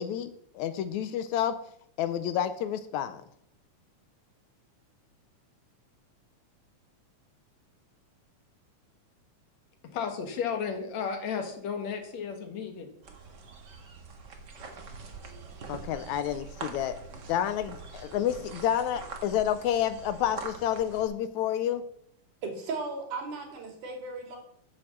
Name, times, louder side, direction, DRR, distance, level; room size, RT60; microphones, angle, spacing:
voice 1, 0.0-1.6 2.0-3.2 15.7-17.0 17.3-21.8, left 10 dB, 80° left, 12 dB, 1.8 m, -29 dB
voice 2, 9.9-12.9, left 6 dB, 60° left, 5 dB, 2.7 m, -33 dB
sound 1, 13.0-21.0, right 4 dB, 45° right, 1.6 m, -44 dB
voice 3, 22.4-24.4, right 3 dB, 70° right, 2 dB, 4.0 m, -36 dB
11.0 x 7.9 x 7.3 m, 0.69 s
omnidirectional pair, 3.8 m